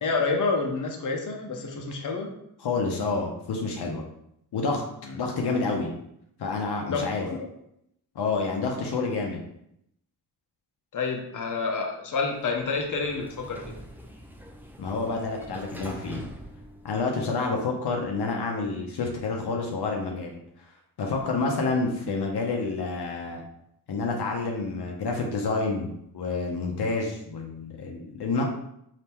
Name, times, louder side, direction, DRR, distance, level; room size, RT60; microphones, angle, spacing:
voice 1, 0.0-2.3 5.1-5.2 6.9-7.5 10.9-13.7, left 4 dB, 50° left, 2 dB, 0.9 m, -28 dB
voice 2, 2.6-4.0 4.5-4.8 5.1-5.9 6.4-7.3 8.1-9.4 14.8-16.2 16.8-20.4 21.0-23.4 23.9-25.9 26.1-28.4, left 3 dB, 70° left, 0 dB, 0.9 m, -28 dB
Sliding door, 12.3-17.5, right 1 dB, 5° right, 0.7 m, -44 dB
3.5 x 2.9 x 4.4 m, 0.75 s
cardioid pair, 65°, 41 cm